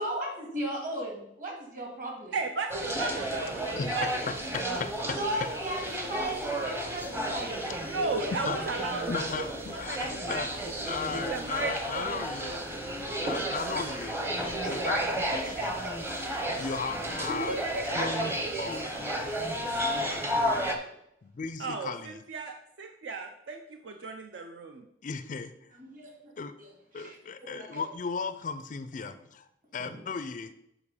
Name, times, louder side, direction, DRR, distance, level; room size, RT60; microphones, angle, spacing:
voice 1, 0.0-2.3 5.2-9.1 14.5-16.0 17.3-18.1 19.7-19.8 25.8-26.3 26.6-26.7 26.9-27.8 29.8-30.0, right 1 dB, 45° right, -1 dB, 2.3 m, -36 dB
voice 2, 2.3-4.1 7.8-9.3 9.7-10.4 10.9-11.0 11.3-12.5 21.6-24.8, right 4 dB, 65° right, 5 dB, 0.5 m, -35 dB
sound 1, 2.7-20.7, right 1 dB, 10° right, 0.8 m, -32 dB
voice 3, 9.1-10.5 10.9-12.6 13.2-14.2 14.7-15.0 15.3-15.8 16.6-17.5 18.0-18.3 18.6-18.8 21.2-22.2 25.0-25.5 26.4-26.5 26.9-30.5, left 5 dB, 40° left, 11 dB, 0.4 m, -36 dB
7.3 x 5.0 x 4.9 m, 0.79 s
head